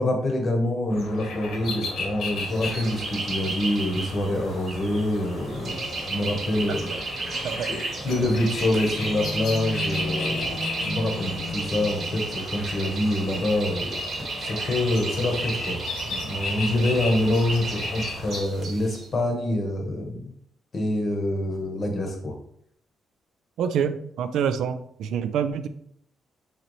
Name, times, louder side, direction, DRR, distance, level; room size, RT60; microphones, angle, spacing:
voice 1, 0.0-6.9 7.7-10.6 10.8-14.0 14.4-20.3 20.7-22.3, left 1 dB, 30° left, 2 dB, 0.9 m, -26 dB
sound 1, 0.9-18.4, left 2 dB, 85° left, 1.2 m, -34 dB
sound 2, 2.4-19.0, right 3 dB, 45° right, 1.0 m, -34 dB
voice 2, 6.7-7.0 7.4-7.7 23.6-25.7, right 7 dB, 85° right, 11 dB, 0.3 m, -27 dB
4.3 x 3.9 x 3.1 m, 0.67 s
cardioid pair, 170°, 0 cm